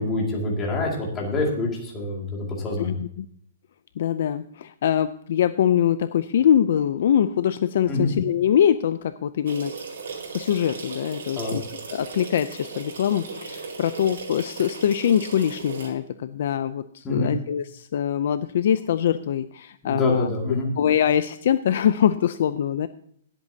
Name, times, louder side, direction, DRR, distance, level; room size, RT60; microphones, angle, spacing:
voice 1, 0.0-3.0 7.9-8.1 11.4-11.6 17.0-17.3 19.8-20.7, left 2 dB, 10° left, -2 dB, 2.2 m, -26 dB
voice 2, 2.8-3.3 4.0-9.7 10.3-11.6 11.9-20.3 20.8-22.9, left 9 dB, 50° left, 13 dB, 0.4 m, -23 dB
sound 1, 9.4-15.9, right 4 dB, 85° right, 4.4 m, -37 dB
20.0 x 8.2 x 2.7 m, 0.66 s
hypercardioid pair, 180°, 0 cm